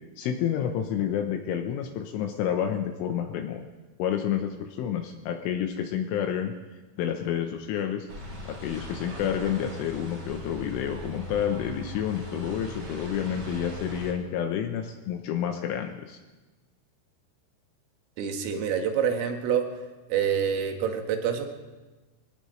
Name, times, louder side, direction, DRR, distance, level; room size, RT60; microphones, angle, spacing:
voice 1, 0.2-3.7 4.0-6.5 7.0-8.1 8.5-16.2, left 9 dB, 80° left, 4 dB, 3.3 m, -29 dB
sound 1, 8.1-14.1, equal, 30° right, 3.3 m, -39 dB
voice 2, 18.2-19.6 20.1-21.5, right 8 dB, 85° right, 4 dB, 4.2 m, -26 dB
25.0 x 18.5 x 3.2 m, 1.2 s
omnidirectional pair, 5.8 m